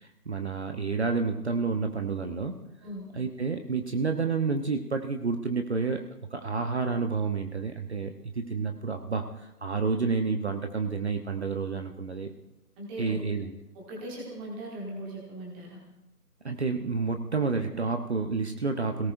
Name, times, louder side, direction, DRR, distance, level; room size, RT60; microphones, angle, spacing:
voice 1, 0.0-2.6 3.1-6.0 6.3-12.3 13.0-13.5 16.4-19.1, right 4 dB, 45° right, 6 dB, 1.0 m, -29 dB
voice 2, 13.7-15.8, right 1 dB, 5° right, -2 dB, 1.4 m, -39 dB
26.5 x 17.5 x 2.6 m, 0.92 s
figure-of-eight pair, 155°, 47 cm